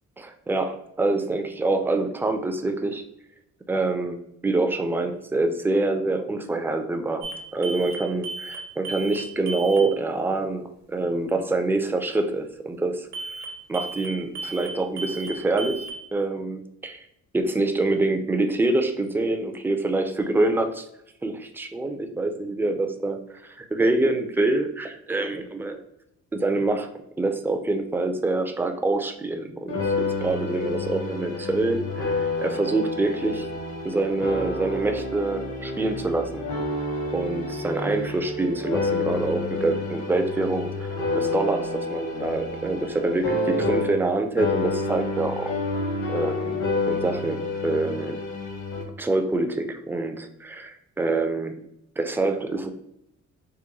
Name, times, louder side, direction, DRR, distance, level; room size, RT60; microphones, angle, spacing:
voice 1, 0.2-3.0 3.7-7.3 7.5-13.1 13.7-15.8 16.1-17.0 17.3-20.9 21.2-23.2 23.5-25.8 26.3-26.9 27.2-33.5 33.8-36.4 37.1-45.5 46.1-46.6 46.9-48.2 49.0-51.6 52.0-52.7, right 2 dB, 5° right, 6 dB, 0.3 m, -26 dB
sound 1, 7.2-7.4 7.6-8.0 8.2-8.6 8.8-9.2 9.5-9.8 13.1-13.5 13.7-14.1 14.4-14.7 15.0-15.3 15.6-15.9, right 3 dB, 65° right, 0.8 m, -34 dB
sound 2, 29.7-44.1 44.4-48.8, left 2 dB, 80° left, 1.4 m, -29 dB
3.5 x 2.2 x 3.0 m, 0.79 s
cardioid pair, 90°, 30 cm